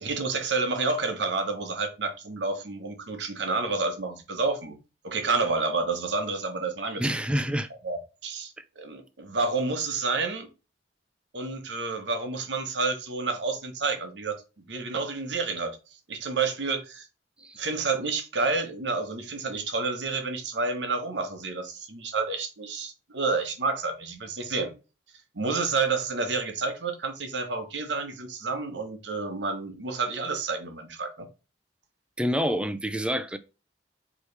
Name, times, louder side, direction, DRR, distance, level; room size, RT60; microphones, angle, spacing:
voice 1, 0.0-4.8 5.0-7.0 7.8-10.5 11.3-14.4 14.7-15.8 16.1-17.1 17.5-24.7 25.3-31.3, right 4 dB, 80° right, 1.0 m, -29 dB
voice 2, 7.0-7.7 8.6-8.7 17.4-17.6 32.2-33.4, equal, 5° right, 0.3 m, -27 dB
4.8 x 3.1 x 3.2 m
head